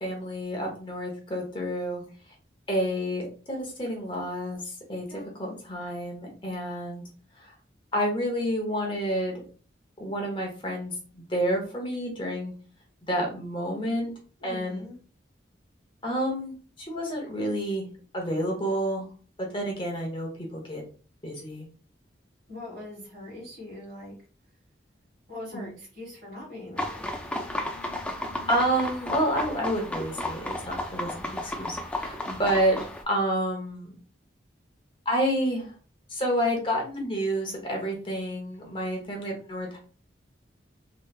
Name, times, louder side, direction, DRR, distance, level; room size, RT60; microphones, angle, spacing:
voice 1, 0.0-2.0 2.7-7.0 7.4-7.5 7.9-9.4 10.0-12.5 13.0-14.1 14.4-14.9 16.0-17.9 18.1-19.1 19.5-20.8 21.2-21.7 25.5-25.7 28.5-32.8 33.1-33.9 35.0-35.7 36.1-39.8, equal, 25° left, 0 dB, 0.9 m, -29 dB
voice 2, 5.1-5.6 14.4-15.0 22.5-24.1 25.3-27.1, left 1 dB, 45° right, -10 dB, 1.7 m, -42 dB
sound 1, 26.8-33.0, left 1 dB, 5° left, 0.3 m, -33 dB
3.2 x 3.1 x 2.3 m, 0.39 s
head